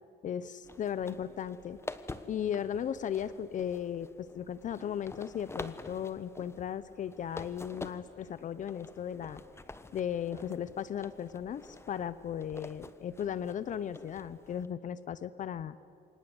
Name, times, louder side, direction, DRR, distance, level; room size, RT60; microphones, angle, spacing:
voice 1, 0.2-1.8 2.3-9.4 9.9-15.8, left 9 dB, 50° left, 16 dB, 0.9 m, -36 dB
sound 1, 0.6-14.7, left 3 dB, 15° left, 1.2 m, -48 dB
28.5 x 25.0 x 8.1 m, 2.4 s
cardioid pair, 110°, 17 cm